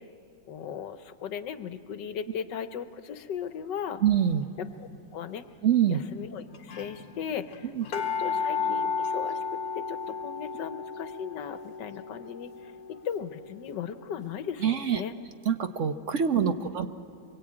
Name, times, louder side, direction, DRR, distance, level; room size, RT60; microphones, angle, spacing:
voice 1, 0.5-4.0 4.8-5.4 5.9-12.5 12.9-15.1 16.3-16.7, left 8 dB, 80° left, 10 dB, 1.6 m, -37 dB
voice 2, 4.0-4.5 5.6-6.0 7.7-7.8 14.6-15.0 15.5-16.9, right 8 dB, 55° right, 8 dB, 1.0 m, -25 dB
sound 1, 4.7-5.1 5.9-6.0 6.2-6.3 6.5-14.2 14.6-14.7, left 5 dB, 60° left, 1.7 m, -34 dB
24.5 x 22.0 x 8.7 m, 2.3 s
omnidirectional pair, 1.9 m